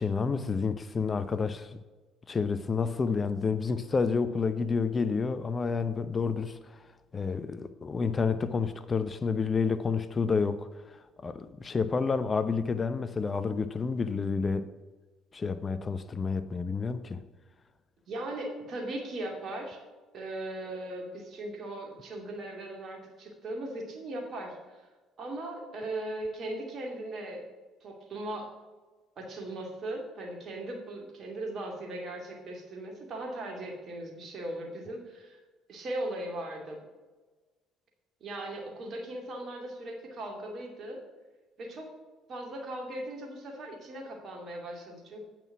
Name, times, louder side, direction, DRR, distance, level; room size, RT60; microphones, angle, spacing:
voice 1, 0.0-1.7 2.3-6.6 7.1-10.7 11.2-14.7 15.3-17.2, left 5 dB, 35° left, 11 dB, 0.6 m, -29 dB
voice 2, 18.1-19.8 20.1-24.8 25.2-27.4 27.8-28.5 29.2-35.4 35.7-36.8 38.2-41.0 41.6-41.9 42.3-45.2, right 1 dB, 50° right, 2 dB, 2.4 m, -38 dB
9.1 x 6.0 x 5.8 m, 1.3 s
hypercardioid pair, 55°, 0 cm